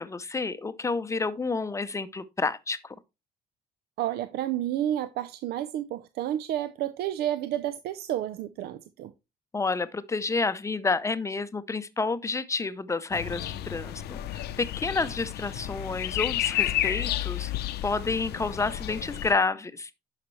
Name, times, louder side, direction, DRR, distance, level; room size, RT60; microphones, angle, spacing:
voice 1, 0.0-3.0 9.5-17.5 17.8-19.9, left 3 dB, 15° left, 0.6 m, -29 dB
voice 2, 4.0-9.1, right 12 dB, 70° right, 0.5 m, -30 dB
sound 1, 13.1-19.3, left 13 dB, 70° left, 0.6 m, -31 dB
10.0 x 5.7 x 3.1 m
cardioid pair, 110°, 17 cm